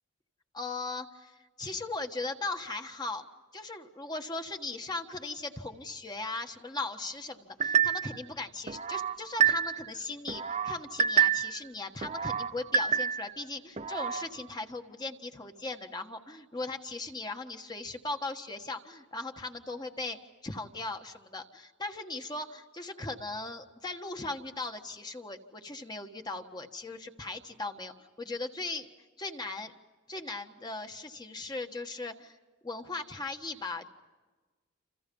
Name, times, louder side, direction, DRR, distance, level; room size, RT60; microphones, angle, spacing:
voice 1, 0.5-3.2 3.5-20.2 20.4-27.9 28.2-28.9 29.2-29.7 30.1-32.4 32.6-33.9, left 3 dB, 20° left, 5 dB, 1.5 m, -38 dB
sound 1, 7.6-8.2 8.7-9.9 10.3-11.6 12.0-13.4 13.8-14.3, right 8 dB, 35° right, 0.9 m, -28 dB
29.0 x 28.0 x 5.5 m, 1.3 s
head